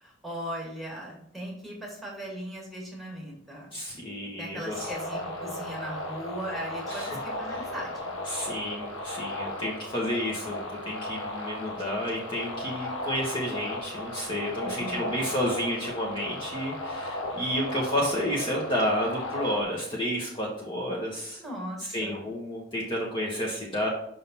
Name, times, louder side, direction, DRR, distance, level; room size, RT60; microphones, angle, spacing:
voice 1, 0.0-3.7 4.4-8.1 14.6-15.2 21.4-22.1, right 1 dB, ahead, -2 dB, 1.9 m, -38 dB
voice 2, 3.7-4.9 6.9-7.2 7.5-7.7 8.2-21.4 21.9-23.9, equal, 25° left, -3 dB, 1.2 m, -31 dB
sound 1, 4.7-19.6, left 1 dB, 90° left, 1.1 m, -36 dB
5.6 x 3.9 x 5.4 m, 0.72 s
head